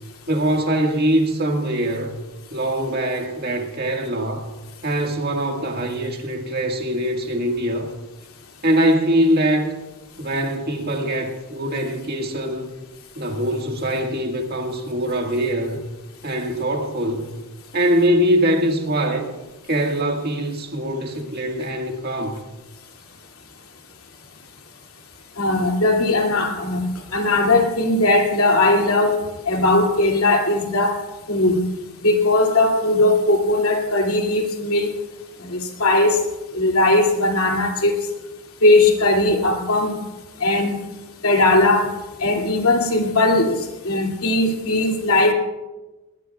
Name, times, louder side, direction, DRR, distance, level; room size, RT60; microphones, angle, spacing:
voice 1, 0.3-2.2 2.5-4.5 4.8-7.9 8.6-9.7 10.2-12.7 13.2-15.8 16.2-17.3 17.7-19.3 19.7-22.4, right 1 dB, 45° right, 2 dB, 1.7 m, -22 dB
voice 2, 25.4-29.2 29.5-31.0 31.3-31.6 32.0-34.9 35.4-36.2 36.5-38.0 38.6-40.0 40.4-40.8 41.2-41.9 42.2-45.3, left 2 dB, 75° left, 2 dB, 2.5 m, -18 dB
20.5 x 19.5 x 2.4 m, 1.1 s
head